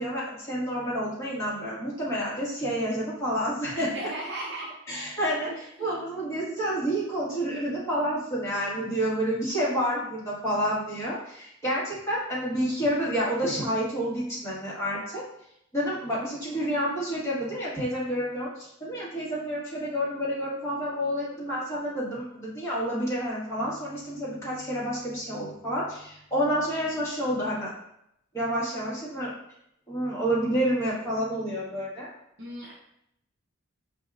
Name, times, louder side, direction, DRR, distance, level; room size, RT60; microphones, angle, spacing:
voice 1, 0.0-4.1 4.9-15.2 15.7-27.7 28.3-29.3 29.9-32.1, equal, 15° left, -8 dB, 1.6 m, -29 dB
voice 2, 3.8-4.7 5.8-5.9 32.4-32.7, right 1 dB, 60° right, -5 dB, 0.7 m, -36 dB
5.0 x 3.5 x 2.4 m, 0.75 s
head